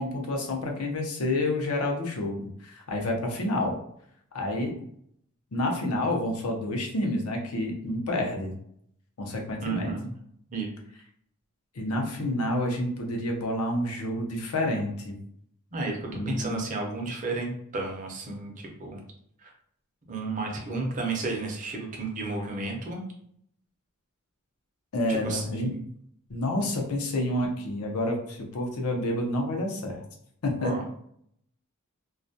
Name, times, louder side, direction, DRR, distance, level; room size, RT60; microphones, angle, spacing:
voice 1, 0.0-3.8 4.3-4.8 5.5-8.5 9.2-9.9 11.7-15.2 16.1-16.6 24.9-25.8 26.3-30.0 30.4-30.7, left 1 dB, 80° left, 2 dB, 0.6 m, -29 dB
voice 2, 9.6-10.1 10.5-10.7 15.7-19.0 19.4-19.5 20.1-23.0 25.1-25.7 30.6-30.8, right 3 dB, 35° right, 0 dB, 0.6 m, -32 dB
2.3 x 2.2 x 2.6 m, 0.69 s
head